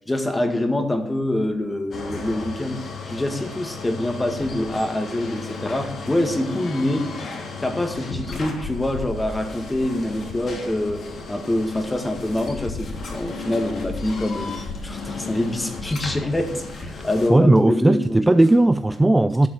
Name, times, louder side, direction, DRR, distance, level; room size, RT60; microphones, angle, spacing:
voice 1, 0.1-7.1 7.6-14.6 14.8-18.2, left 1 dB, 15° left, 1.8 m, -25 dB
sound 1, 1.9-17.3, left 3 dB, 55° left, 2.8 m, -34 dB
voice 2, 17.3-19.5, right 2 dB, 15° right, 0.4 m, -16 dB
12.0 x 6.1 x 7.3 m
cardioid pair, 90°, 0 cm